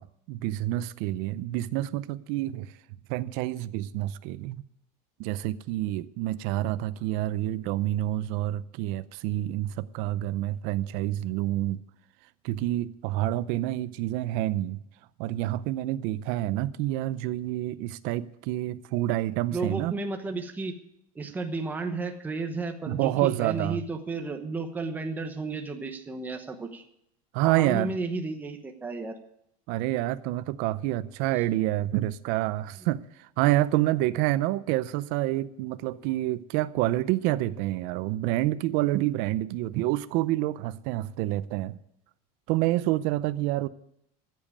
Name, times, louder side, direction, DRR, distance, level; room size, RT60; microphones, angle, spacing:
voice 1, 0.0-2.7 3.1-4.6 5.2-11.8 12.4-14.8 15.2-19.9 22.9-23.8 27.3-27.9 29.7-41.8 42.5-43.7, right 15 dB, 55° right, 0.6 m, -28 dB
voice 2, 19.5-20.8 21.1-26.8 27.4-29.2, right 3 dB, 10° right, 1.0 m, -33 dB
14.0 x 7.5 x 8.4 m
cardioid pair, 170°, 18 cm